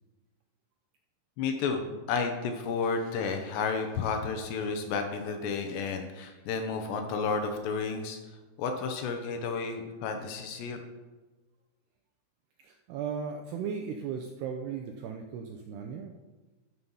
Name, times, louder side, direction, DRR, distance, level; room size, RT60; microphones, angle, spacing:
voice 1, 1.4-8.2 8.6-10.8, left 5 dB, 75° left, 5 dB, 2.9 m, -31 dB
voice 2, 12.6-16.1, right 6 dB, 80° right, 4 dB, 2.4 m, -36 dB
13.0 x 7.6 x 5.6 m, 1.2 s
omnidirectional pair, 5.6 m